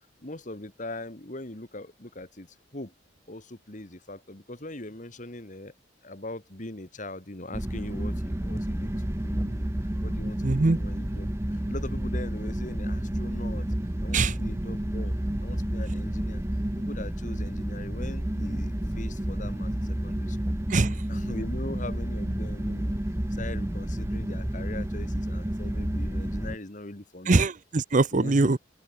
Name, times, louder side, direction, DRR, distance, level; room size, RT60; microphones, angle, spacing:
voice 1, 0.2-2.5 2.7-2.9 3.3-5.7 6.0-9.7 10.0-15.1 15.4-16.4 16.8-20.4 21.1-23.0 23.3-27.4 28.1-28.6, left 1 dB, 45° left, 2.6 m, -41 dB
sound 1, 7.5-26.6, right 1 dB, 15° right, 0.9 m, -30 dB
voice 2, 10.4-10.8 14.1-14.4 20.7-21.0 27.3-28.6, right 3 dB, 45° right, 0.7 m, -22 dB
open air
head